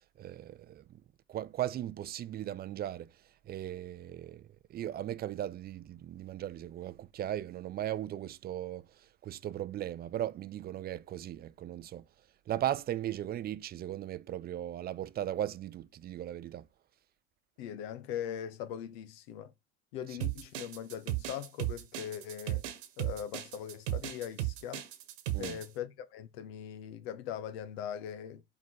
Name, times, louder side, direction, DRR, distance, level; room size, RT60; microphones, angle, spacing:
voice 1, 0.2-1.0 1.3-3.1 3.5-12.0 12.5-16.7 20.1-20.2 25.3-25.6, right 12 dB, 30° right, 0.5 m, -37 dB
voice 2, 17.6-19.5 19.9-22.6 23.0-24.8 25.4-28.4, left 9 dB, 60° left, 1.1 m, -40 dB
sound 1, 20.2-25.7, right 15 dB, 65° right, 1.3 m, -35 dB
5.7 x 3.8 x 4.5 m
hypercardioid pair, 80°, 34 cm